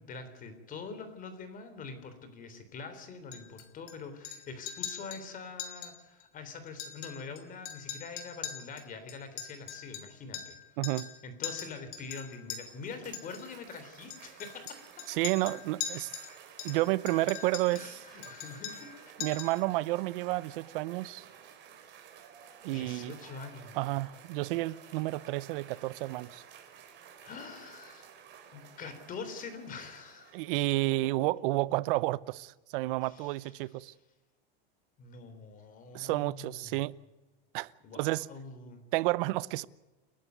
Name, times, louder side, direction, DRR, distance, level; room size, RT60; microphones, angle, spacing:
voice 1, 0.0-10.6 11.2-15.1 17.7-19.1 22.7-24.0 27.2-28.1 28.5-30.5 31.0-31.4 33.0-33.5 35.0-36.8 37.8-38.8, left 4 dB, 25° left, 3.6 m, -45 dB
Chink clink, 3.3-3.9 4.2-4.4 4.7-5.2 5.6-5.9 6.2-6.3 6.7-7.4 7.7-10.6 10.8-11.1 11.4-12.6 13.1-13.4 14.1-16.3 16.6-17.9 18.2-18.9 19.2-19.6, left 9 dB, 45° left, 3.8 m, -41 dB
voice 2, 10.8-11.1 15.1-16.1 16.6-18.0 19.2-21.2 22.6-23.2 23.7-26.4 30.3-33.9 35.9-37.0 37.5-38.3 38.9-39.6, right 19 dB, 60° right, 0.8 m, -31 dB
Cheering / Applause, 12.3-30.8, right 8 dB, 35° right, 4.0 m, -53 dB
30.0 x 11.5 x 9.3 m
supercardioid pair, 155°, 30 cm